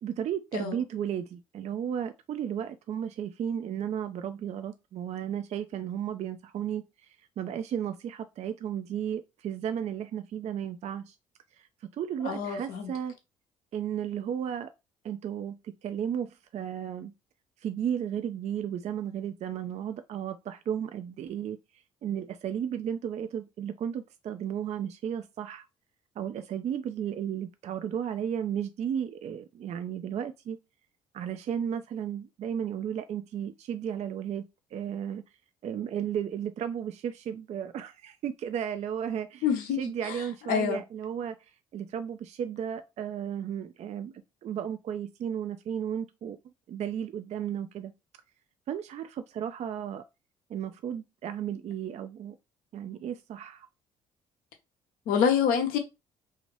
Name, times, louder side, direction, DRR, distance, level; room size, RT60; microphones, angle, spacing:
voice 1, 0.0-11.2 11.6-13.1 13.7-14.7 15.0-17.1 17.6-21.6 22.0-25.7 26.2-30.6 31.1-35.2 35.6-39.5 39.7-41.4 41.7-47.9 48.7-50.0 50.5-52.4 52.7-53.7, right 9 dB, 50° right, 0.4 m, -34 dB
voice 2, 12.2-12.9 39.4-39.8 40.1-40.2 40.5-40.8 55.1-55.8, left 7 dB, 75° left, 0.8 m, -26 dB
2.7 x 2.5 x 3.2 m
supercardioid pair, 60°, 15 cm